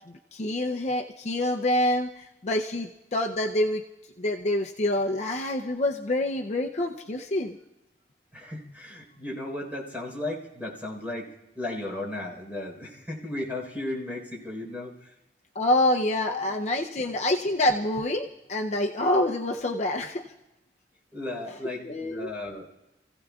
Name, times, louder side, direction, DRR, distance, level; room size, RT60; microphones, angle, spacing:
voice 1, 0.1-3.8 4.2-7.6 15.5-20.2 21.8-22.3, left 1 dB, 40° left, 3 dB, 0.6 m, -26 dB
voice 2, 8.3-11.3 11.5-15.1 16.2-16.5 17.0-17.1 21.1-22.6, left 2 dB, 10° right, -2 dB, 4.2 m, -35 dB
30.0 x 16.0 x 2.4 m, 0.96 s
head